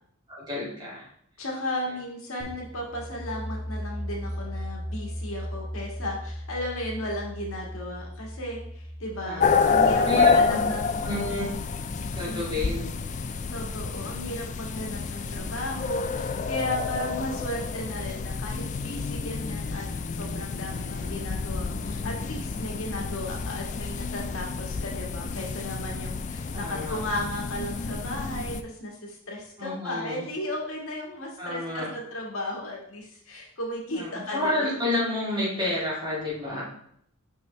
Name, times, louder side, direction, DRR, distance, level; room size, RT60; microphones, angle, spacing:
voice 1, 0.3-1.1 9.2-9.7 10.0-10.6 11.0-11.5 12.1-12.9 20.6-21.2 26.5-27.0 29.6-30.2 31.4-31.9 33.9-36.6, left 1 dB, 20° right, -7 dB, 2.6 m, -30 dB
voice 2, 1.4-11.2 12.3-12.8 13.5-19.9 20.1-34.7, left 1 dB, 85° left, -1 dB, 1.7 m, -35 dB
sound 1, 2.4-12.0, equal, ahead, 1.7 m, -38 dB
sound 2, 9.4-28.6, left 5 dB, 35° left, 0.3 m, -28 dB
6.0 x 5.4 x 3.3 m, 0.67 s
head